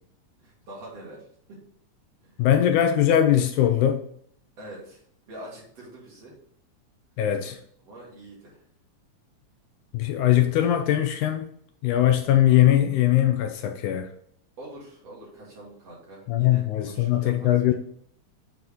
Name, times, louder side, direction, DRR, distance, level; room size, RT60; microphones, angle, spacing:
voice 1, 0.4-1.6 2.2-2.4 4.6-6.4 7.8-8.6 14.6-17.7, right 1 dB, 50° right, -5 dB, 3.7 m, -44 dB
voice 2, 2.4-4.0 7.2-7.6 9.9-11.5 11.8-14.1 16.3-17.7, left 12 dB, 75° left, 6 dB, 2.0 m, -21 dB
7.8 x 4.7 x 3.6 m, 0.65 s
omnidirectional pair, 3.7 m